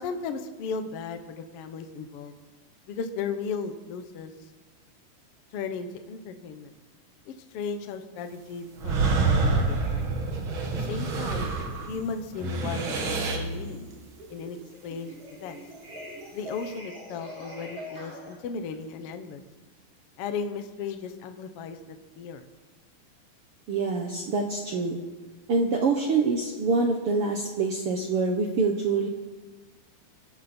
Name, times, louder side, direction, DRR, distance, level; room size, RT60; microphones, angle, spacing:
voice 1, 0.0-2.3 2.9-4.3 5.5-6.7 7.3-10.1 10.6-11.5 11.9-13.8 14.3-14.6 14.8-15.6 16.3-19.4 20.2-21.8 22.1-22.4, left 5 dB, 70° left, 8 dB, 1.4 m, -36 dB
sound 1, 8.8-12.0 12.3-13.6, right 4 dB, 45° right, 1.8 m, -27 dB
sound 2, 10.7-11.1 11.5-18.3, equal, 25° right, 4.9 m, -38 dB
voice 2, 23.7-25.0 25.5-29.1, right 4 dB, 65° right, 2 dB, 1.5 m, -25 dB
27.0 x 12.0 x 4.4 m, 1.3 s
omnidirectional pair, 4.1 m